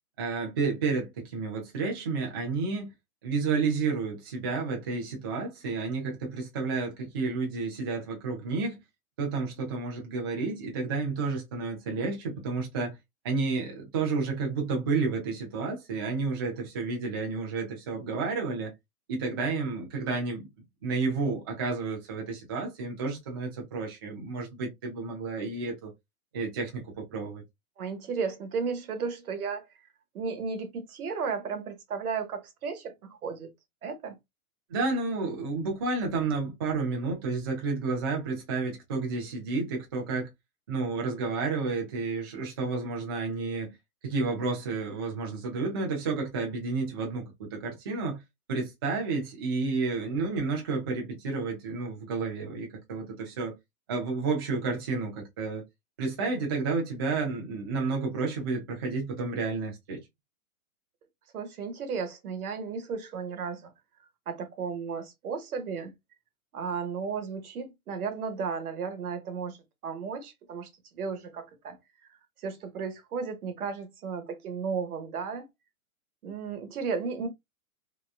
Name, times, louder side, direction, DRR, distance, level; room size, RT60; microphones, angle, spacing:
voice 1, 0.2-2.9 3.2-8.8 9.2-13.0 13.2-18.7 19.1-20.5 20.8-25.9 26.3-27.4 34.7-40.3 40.7-43.7 44.0-48.2 48.5-53.6 53.9-55.6 56.0-60.0, right 4 dB, 20° right, 0.3 m, -31 dB
voice 2, 27.8-29.7 30.1-33.5 33.8-34.2 61.3-63.7 64.3-66.0 66.5-69.6 69.8-71.8 72.4-75.5 76.2-77.3, right 5 dB, 80° right, 1.0 m, -34 dB
2.8 x 2.2 x 2.3 m
hypercardioid pair, 140°, 43 cm